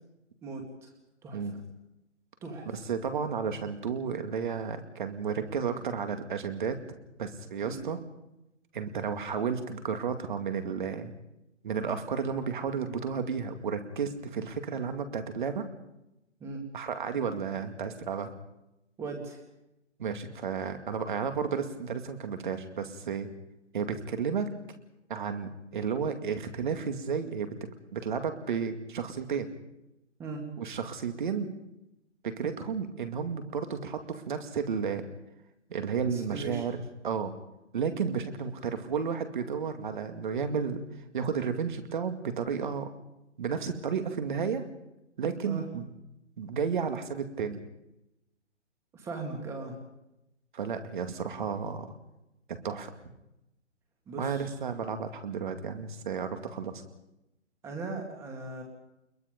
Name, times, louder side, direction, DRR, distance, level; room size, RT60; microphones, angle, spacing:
voice 1, 0.4-0.9 1.2-1.6 2.4-2.9 7.6-7.8 16.4-16.6 19.0-19.4 30.2-30.4 36.0-36.6 45.4-45.7 48.9-49.8 54.1-54.5 57.6-58.6, right 3 dB, 5° right, 3 dB, 2.1 m, -39 dB
voice 2, 2.7-6.8 7.2-8.0 8.7-11.1 11.6-15.7 16.7-18.3 20.0-23.3 23.7-24.5 25.1-29.5 30.6-31.5 32.2-35.0 35.7-36.8 37.0-37.3 37.7-40.8 41.1-42.9 43.4-44.7 45.2-45.9 46.4-47.6 50.5-51.9 52.5-53.1 54.2-56.8, right 6 dB, 40° right, 7 dB, 2.3 m, -32 dB
28.0 x 22.0 x 5.3 m, 0.89 s
hypercardioid pair, 165°, 38 cm